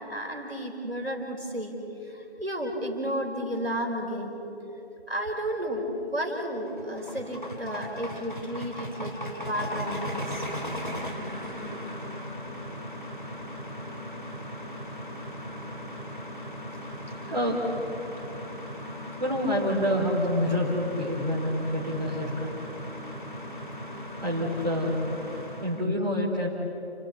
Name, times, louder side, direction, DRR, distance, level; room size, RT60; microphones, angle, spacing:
voice 1, 0.1-4.4 5.1-9.1 9.5-10.5 17.3-17.4, equal, 65° right, 2 dB, 4.7 m, -32 dB
sound 1, 6.4-25.8, equal, 50° left, 2.5 m, -38 dB
voice 2, 19.2-22.5 24.2-25.0 25.6-26.5, left 1 dB, 40° right, -4 dB, 3.7 m, -27 dB
29.5 x 16.0 x 8.4 m, 2.8 s
figure-of-eight pair, 175°, 33 cm